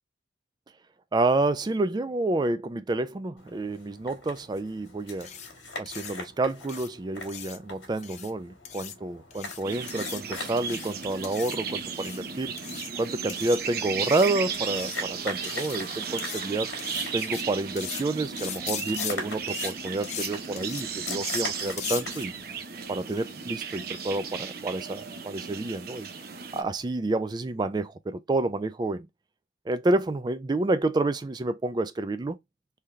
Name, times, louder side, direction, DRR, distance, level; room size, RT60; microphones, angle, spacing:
voice 1, 1.1-5.3 5.8-12.5 13.0-16.7 17.1-22.3 22.9-26.1 26.5-29.1 29.7-32.4, right 2 dB, 25° right, 0.3 m, -29 dB
sound 1, 3.4-23.2, left 2 dB, 75° left, 1.5 m, -43 dB
sound 2, 5.2-5.5 5.9-6.1 6.7-6.9 7.3-7.6 8.0-8.3 8.7-8.9 9.3-9.6 9.9-10.2 10.6-10.9 11.2-11.6 11.9-12.2 12.6-12.9 13.3-13.6 14.0-14.3 14.7-15.0 15.4-15.8 16.2-16.4 16.8-17.4 17.8-18.0 18.4-19.1 19.5-19.7 20.0-20.3 20.6-20.8 21.1-21.4 21.8-22.0, left 8 dB, 40° left, 0.6 m, -38 dB
sound 3, 9.6-26.6, right 6 dB, 55° right, 0.7 m, -35 dB
3.8 x 2.8 x 3.0 m
head